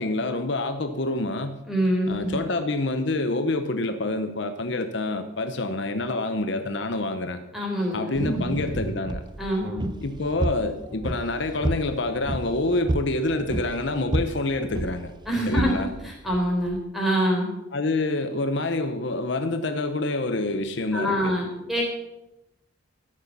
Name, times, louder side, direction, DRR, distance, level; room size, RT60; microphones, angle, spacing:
voice 1, 0.0-1.6 2.1-7.4 7.9-9.2 10.0-15.1 15.5-15.9 17.7-21.4, left 2 dB, 60° left, 8 dB, 0.8 m, -27 dB
voice 2, 1.7-2.4 7.5-8.5 9.4-9.9 15.3-17.6 20.9-21.8, equal, ahead, -1 dB, 4.1 m, -25 dB
sound 1, 8.1-16.8, right 1 dB, 20° right, 0.4 m, -31 dB
13.5 x 9.8 x 6.7 m, 0.92 s
head